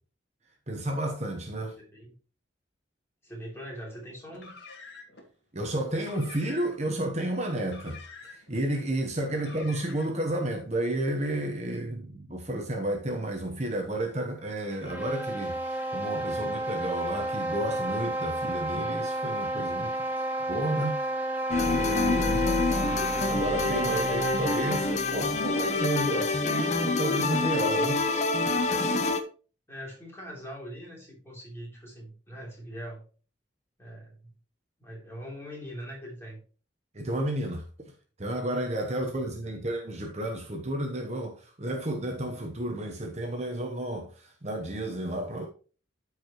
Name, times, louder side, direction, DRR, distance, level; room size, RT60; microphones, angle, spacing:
voice 1, 0.7-1.8 5.5-20.1 20.5-21.0 21.7-22.6 23.3-28.1 36.9-37.9 38.2-45.5, right 1 dB, 35° right, 1.0 m, -32 dB
voice 2, 1.8-2.1 3.2-4.6 9.3-9.9 22.2-23.0 29.7-33.0 33.8-34.3 34.8-36.4 39.4-39.6, equal, 15° left, 3.4 m, -42 dB
Car, 4.3-5.3 5.9-6.9 7.6-8.6 9.3-10.3, left 4 dB, 65° left, 1.9 m, -48 dB
sound 1, 14.7-25.0, right 1 dB, 10° right, 1.4 m, -31 dB
sound 2, 21.5-29.2, left 3 dB, 35° left, 0.8 m, -27 dB
13.0 x 4.9 x 3.1 m
head